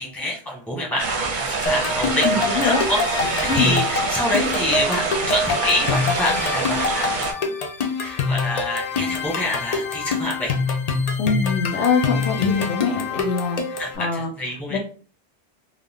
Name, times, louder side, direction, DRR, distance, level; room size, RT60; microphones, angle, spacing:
voice 1, 0.0-7.1 8.0-10.5 13.8-14.8, left 1 dB, ahead, -2 dB, 0.9 m, -27 dB
sound 1, 1.0-7.3, right 4 dB, 50° right, 0.7 m, -26 dB
sound 2, 1.7-14.0, left 4 dB, 55° left, 0.4 m, -25 dB
voice 2, 2.2-2.8 3.5-3.7 11.2-13.6 14.0-14.3 14.7-14.8, left 5 dB, 80° left, 4 dB, 0.9 m, -23 dB
2.4 x 2.4 x 3.5 m, 0.41 s
omnidirectional pair, 1.2 m